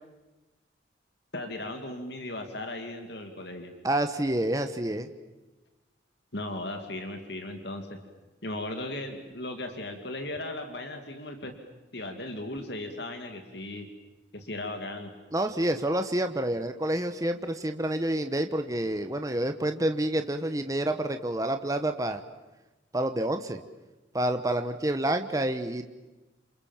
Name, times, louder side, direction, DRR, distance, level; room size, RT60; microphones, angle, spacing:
voice 1, 1.3-3.7 6.3-8.0 8.4-11.5 11.9-13.9 14.3-15.1, left 1 dB, 60° left, 5 dB, 2.7 m, -37 dB
voice 2, 3.8-5.1 15.3-22.2 22.9-23.6 24.1-25.8, right 1 dB, 20° right, 7 dB, 1.1 m, -28 dB
28.0 x 27.5 x 7.3 m, 1.1 s
head